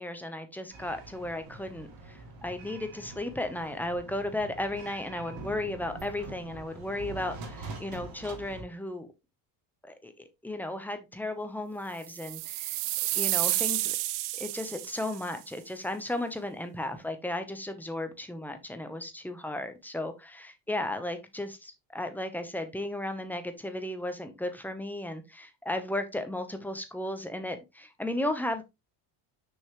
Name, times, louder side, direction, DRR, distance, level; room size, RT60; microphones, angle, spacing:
voice 1, 0.0-9.1 9.8-12.8 13.1-14.0 14.3-28.6, left 1 dB, 5° left, 0.9 m, -35 dB
sound 1, 0.7-8.6, right 3 dB, 70° right, 3.7 m, -45 dB
sound 2, 12.1-15.3, right 17 dB, 90° right, 0.8 m, -30 dB
6.5 x 5.4 x 3.1 m
cardioid pair, 145°, 47 cm